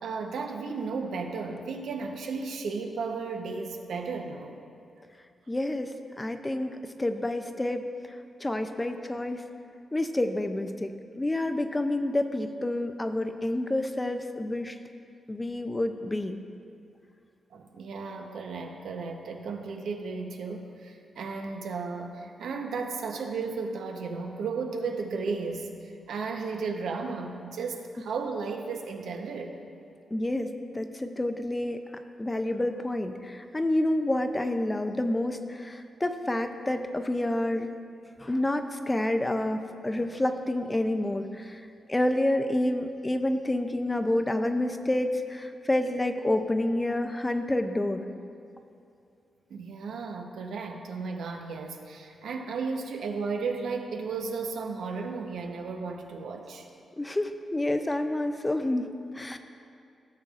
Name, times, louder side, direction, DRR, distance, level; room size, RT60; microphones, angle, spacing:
voice 1, 0.0-4.5 17.5-25.7 26.1-29.5 49.5-56.7, right 4 dB, 80° right, 3 dB, 0.8 m, -34 dB
voice 2, 5.5-5.9 6.2-7.9 8.4-9.4 9.9-14.8 15.3-16.4 30.1-31.8 32.2-37.7 38.2-41.6 41.9-48.0 57.0-59.4, left 1 dB, 10° left, 8 dB, 0.4 m, -28 dB
16.0 x 7.5 x 2.4 m, 2.5 s
wide cardioid pair, 160°, 0 cm